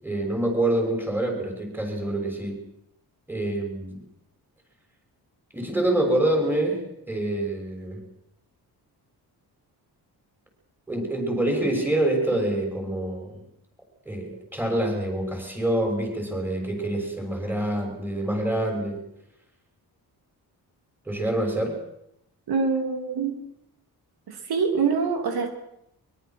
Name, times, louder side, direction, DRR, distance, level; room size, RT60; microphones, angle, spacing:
voice 1, 0.0-2.6 3.3-4.0 5.5-8.0 10.9-13.4 14.0-19.0 21.0-21.8, right 1 dB, 5° right, 2 dB, 6.8 m, -26 dB
voice 2, 22.5-23.3 24.3-25.5, right 5 dB, 70° right, 4 dB, 3.3 m, -25 dB
23.5 x 23.0 x 6.2 m, 0.77 s
wide cardioid pair, 135°, 38 cm